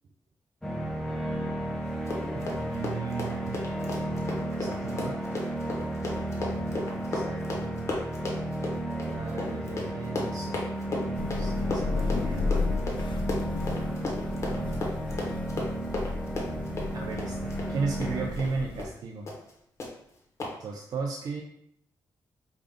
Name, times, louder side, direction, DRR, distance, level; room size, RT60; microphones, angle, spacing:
sound 1, 0.6-18.3, right 1 dB, 5° left, 0.7 m, -33 dB
Run, 1.9-18.5 18.8-19.0 19.3-19.5 19.8-19.9 20.4-20.5, left 2 dB, 35° left, 1.0 m, -35 dB
voice 1, 2.3-3.6 4.6-5.2 6.9-7.4 9.1-10.6 11.3-12.7 16.9-19.3 20.6-21.4, right 4 dB, 55° right, 0 dB, 0.4 m, -35 dB
Thunder / Rain, 11.1-18.8, left 3 dB, 75° left, 0.3 m, -33 dB
5.2 x 2.5 x 3.5 m, 0.74 s
wide cardioid pair, 160°, 8 cm